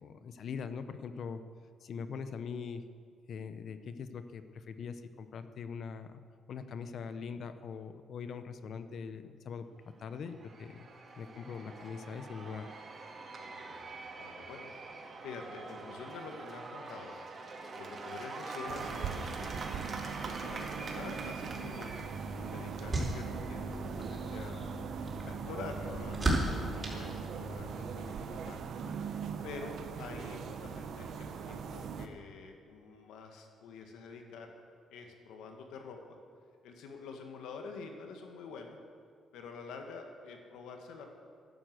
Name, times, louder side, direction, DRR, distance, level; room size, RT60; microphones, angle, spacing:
voice 1, 0.0-1.4 1.8-2.9 3.3-6.2 6.5-10.9 11.2-12.7, left 6 dB, 60° left, 10 dB, 0.8 m, -42 dB
Cheering / Applause / Crowd, 10.0-24.7, right 3 dB, 45° right, 2.0 m, -45 dB
voice 2, 13.3-14.7 15.2-17.2 17.7-19.9 20.4-22.0 22.4-24.7 25.2-28.7 29.4-34.5 34.9-36.2 36.6-38.8 39.3-41.1, left 4 dB, 90° left, 4 dB, 1.8 m, -47 dB
sound 1, 18.7-32.1, right 6 dB, 70° right, 1.1 m, -41 dB
sound 2, 21.8-27.9, right 1 dB, 25° right, 4.4 m, -37 dB
11.5 x 11.0 x 7.8 m, 2.2 s
cardioid pair, 90°, 0 cm